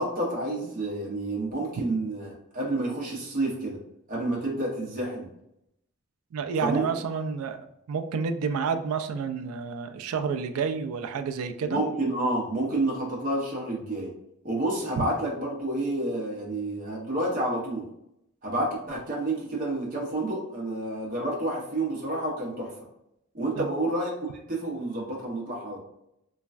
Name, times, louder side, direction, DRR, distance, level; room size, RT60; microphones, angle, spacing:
voice 1, 0.0-3.8 4.1-5.3 6.6-6.9 11.6-14.1 14.4-17.9 18.4-22.7 23.3-24.1 24.5-25.8, right 1 dB, 40° right, -3 dB, 0.7 m, -29 dB
voice 2, 6.3-11.8 23.6-23.7, right 6 dB, 70° right, 7 dB, 0.3 m, -30 dB
3.1 x 2.2 x 2.4 m, 0.80 s
head